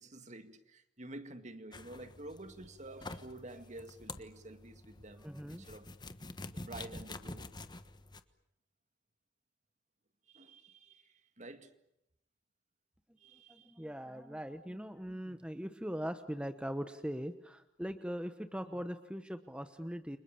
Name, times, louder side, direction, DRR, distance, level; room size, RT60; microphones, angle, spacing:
voice 1, 0.0-5.9 6.5-7.5 10.3-11.7 13.2-13.7, right 2 dB, 40° right, 2.1 m, -50 dB
sound 1, 1.7-8.2, left 2 dB, 25° left, 1.3 m, -48 dB
voice 2, 5.2-5.7 13.1-20.2, equal, 5° right, 1.0 m, -41 dB
30.0 x 26.0 x 7.1 m
head